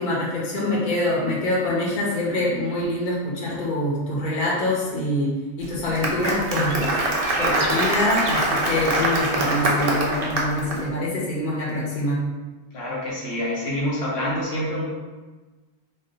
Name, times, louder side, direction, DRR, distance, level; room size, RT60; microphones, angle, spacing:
voice 1, 0.0-5.3 5.6-12.2, left 1 dB, 45° left, -6 dB, 0.9 m, -25 dB
Applause, 5.6-10.8, right 1 dB, 50° right, 0.4 m, -24 dB
sound 1, 6.7-8.5, right 3 dB, 70° right, 0.8 m, -35 dB
voice 2, 12.7-14.9, left 1 dB, 75° left, -5 dB, 1.0 m, -27 dB
2.4 x 2.3 x 3.8 m, 1.2 s
omnidirectional pair, 1.1 m